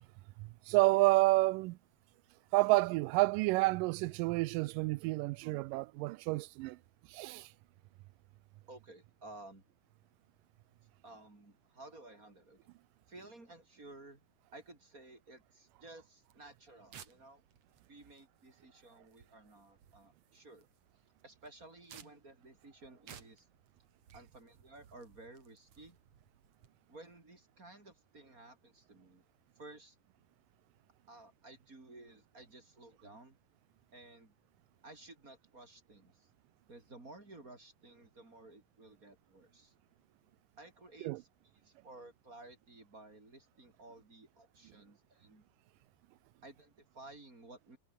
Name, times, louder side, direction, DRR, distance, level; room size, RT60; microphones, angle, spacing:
voice 1, 0.4-1.8 2.5-6.8 7.1-7.5 41.0-41.2, right 22 dB, 80° right, 2.1 m, -29 dB
voice 2, 8.7-9.6 11.0-12.7 13.1-14.2 14.5-17.4 17.9-20.7 21.2-23.5 24.1-26.0 26.9-29.2 29.6-30.0 31.1-33.4 33.9-34.3 34.8-36.3 36.7-39.7 40.6-41.3 41.6-45.4 46.4-47.8, right 2 dB, 25° right, 3.9 m, -55 dB
sound 1, 16.2-26.7, right 8 dB, 50° right, 2.9 m, -60 dB
omnidirectional pair, 4.2 m